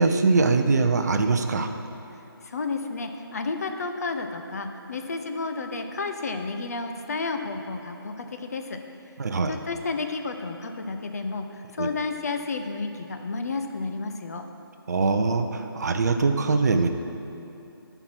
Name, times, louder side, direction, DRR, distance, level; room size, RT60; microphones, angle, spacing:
voice 1, 0.0-1.7 9.2-9.5 11.8-11.9 14.9-16.9, right 4 dB, 45° right, 7 dB, 0.5 m, -22 dB
voice 2, 2.4-8.8 9.4-14.5, left 3 dB, 40° left, 6 dB, 0.6 m, -31 dB
9.8 x 4.6 x 6.1 m, 2.7 s
figure-of-eight pair, 160°, 13 cm